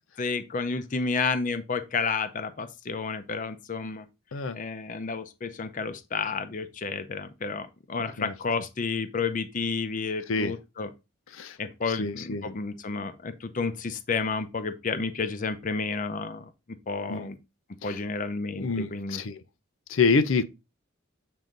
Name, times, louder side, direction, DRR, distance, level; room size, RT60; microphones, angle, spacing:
voice 1, 0.2-4.1 4.5-10.9 11.6-16.5 16.9-17.4 17.8-19.2, left 4 dB, 40° left, 0.6 m, -31 dB
voice 2, 11.9-12.5 17.1-17.3 17.8-18.0 18.6-19.4 19.9-20.4, left 4 dB, 85° left, 0.6 m, -27 dB
7.6 x 2.7 x 5.1 m
head